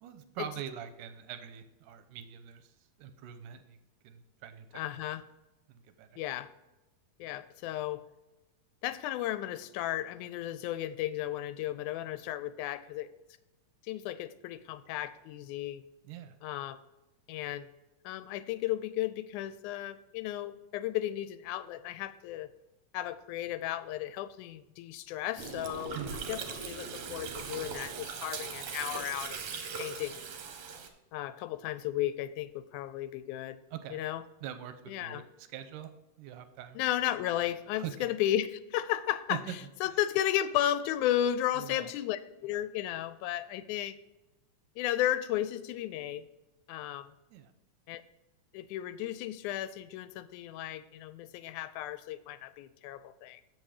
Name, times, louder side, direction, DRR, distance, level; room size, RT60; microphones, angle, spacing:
voice 1, 0.0-2.7 3.0-3.8 4.0-5.0 5.7-6.2 16.0-16.3 25.9-26.3 33.7-34.0 34.4-35.9 36.2-36.8 37.8-38.1 39.3-39.6 39.8-39.9 41.6-41.9 47.3-47.5, right 10 dB, 90° right, 10 dB, 2.3 m, -43 dB
voice 2, 4.7-5.2 6.2-6.5 7.2-8.0 8.8-13.1 13.9-15.8 16.4-16.8 17.3-17.7 18.1-22.5 22.9-26.0 26.3-29.4 29.8-30.2 31.1-33.6 33.9-34.2 34.9-35.2 36.8-39.4 39.8-44.0 44.8-46.2 46.7-47.1 47.9-48.0 48.5-53.4, left 12 dB, 80° left, 13 dB, 1.9 m, -34 dB
Gurgling, 25.4-30.9, right 5 dB, 65° right, 1.5 m, -40 dB
7.6 x 7.1 x 4.9 m, 1.0 s
omnidirectional pair, 3.6 m